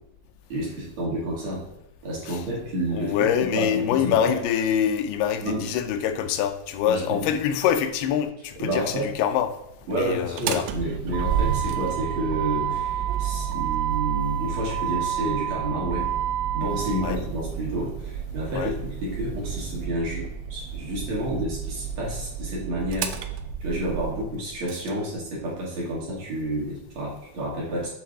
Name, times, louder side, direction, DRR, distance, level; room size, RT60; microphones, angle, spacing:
voice 1, 0.5-1.6 2.0-4.3 5.4-5.7 6.9-7.3 8.6-9.1 9.9-16.1 16.5-23.1 23.6-27.9, right 1 dB, 50° right, 2.7 m, -30 dB
voice 2, 2.9-9.5 9.9-10.7 17.0-17.2 18.6-18.7, left 9 dB, 90° left, 2.6 m, -25 dB
Motor vehicle (road), 10.2-24.9, right 9 dB, 90° right, 2.6 m, -29 dB
7.5 x 3.9 x 3.6 m
omnidirectional pair, 4.4 m